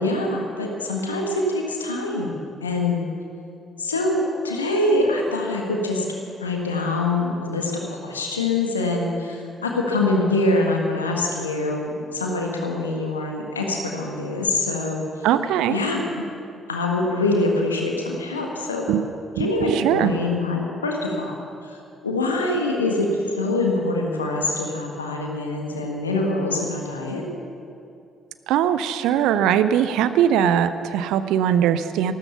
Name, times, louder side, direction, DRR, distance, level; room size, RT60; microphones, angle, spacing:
voice 1, 0.0-3.1 3.8-6.0 6.4-15.0 15.7-16.0 16.7-18.9 19.4-21.3 21.6-21.8 22.0-27.2, left 2 dB, 85° left, 1 dB, 1.5 m, -24 dB
voice 2, 15.2-15.8 18.9-19.1 19.3-20.1 28.5-32.1, right 9 dB, 65° right, 12 dB, 0.6 m, -20 dB
13.5 x 13.0 x 7.0 m, 2.6 s
figure-of-eight pair, 40°, 0 cm